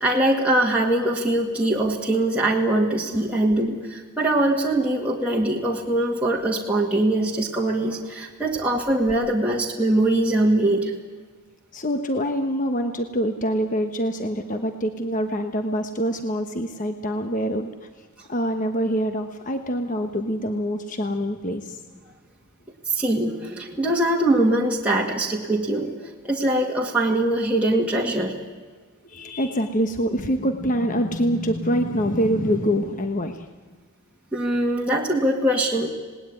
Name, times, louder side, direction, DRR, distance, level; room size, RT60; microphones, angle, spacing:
voice 1, 0.0-10.9 22.8-25.9 26.2-28.3 34.3-35.9, right 1 dB, 5° right, -3 dB, 2.0 m, -22 dB
voice 2, 11.7-21.8 29.0-33.5, equal, 35° left, 6 dB, 1.1 m, -25 dB
27.0 x 19.0 x 9.7 m, 1.4 s
head